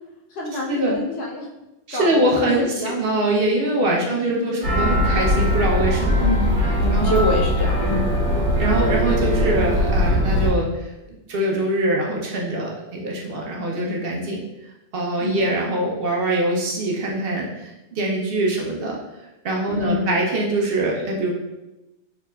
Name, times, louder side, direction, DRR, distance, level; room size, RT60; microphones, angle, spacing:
voice 1, 0.3-1.5 1.9-3.0 3.9-4.6 6.2-6.5 6.8-8.1 15.2-15.4 19.7-20.2, left 1 dB, 65° left, -2 dB, 0.9 m, -26 dB
voice 2, 1.9-6.3 6.9-7.2 8.6-14.4 14.9-19.0 19.4-21.3, right 1 dB, 60° right, -2 dB, 0.7 m, -23 dB
sound 1, 4.6-10.5, equal, 80° right, 1.2 m, -20 dB
3.3 x 2.8 x 2.2 m, 0.97 s
omnidirectional pair, 1.2 m